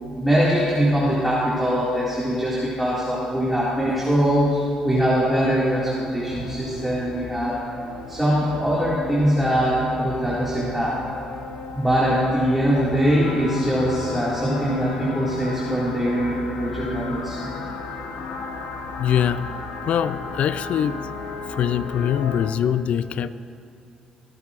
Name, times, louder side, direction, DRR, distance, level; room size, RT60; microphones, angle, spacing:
voice 1, 0.0-7.6 8.1-11.0 11.7-17.6, equal, 5° right, -8 dB, 2.2 m, -22 dB
sound 1, 6.3-22.5, left 4 dB, 90° left, 0.8 m, -34 dB
voice 2, 19.0-19.5 19.9-21.1 21.5-23.3, left 9 dB, 65° left, 15 dB, 0.4 m, -23 dB
22.5 x 8.4 x 2.5 m, 2.6 s
supercardioid pair, 65°, 2 cm